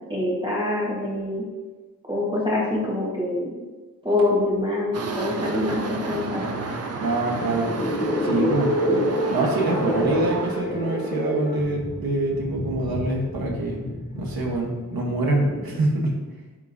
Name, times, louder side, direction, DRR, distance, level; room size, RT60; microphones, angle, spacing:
voice 1, 0.1-1.4 2.1-3.5 4.0-6.5, left 2 dB, 15° right, -6 dB, 1.5 m, -25 dB
sound 1, 4.9-10.6, right 3 dB, 45° right, 0.7 m, -31 dB
voice 2, 7.0-7.7 8.2-8.7 9.3-13.8 14.1-16.1, right 2 dB, 75° right, -1 dB, 1.3 m, -25 dB
sound 2, 7.2-15.9, equal, 25° left, 0.8 m, -28 dB
9.8 x 3.6 x 2.7 m, 1.3 s
wide cardioid pair, 85°, 36 cm